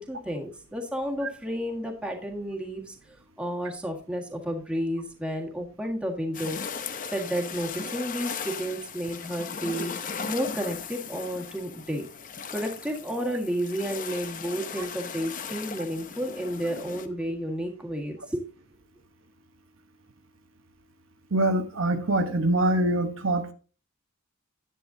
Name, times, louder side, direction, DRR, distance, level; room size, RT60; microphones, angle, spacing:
voice 1, 0.0-6.6 7.1-12.1 12.5-18.4, equal, 5° right, 1.6 m, -32 dB
sound 1, 6.3-17.1, left 6 dB, 35° left, 0.7 m, -37 dB
voice 2, 21.3-23.5, right 1 dB, 60° right, 1.0 m, -24 dB
10.0 x 9.8 x 2.7 m
head